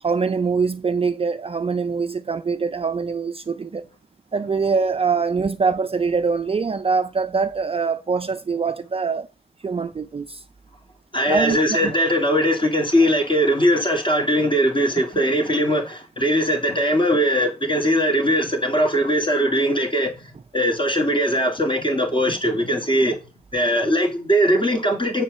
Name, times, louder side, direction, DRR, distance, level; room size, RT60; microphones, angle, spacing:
voice 1, 0.0-3.9 4.3-9.3 9.6-10.4 11.3-11.9, right 5 dB, 35° right, 0.4 m, -23 dB
voice 2, 11.1-23.2 23.5-25.2, equal, 30° left, 2.2 m, -20 dB
7.4 x 4.3 x 6.5 m
wide cardioid pair, 95°, 18 cm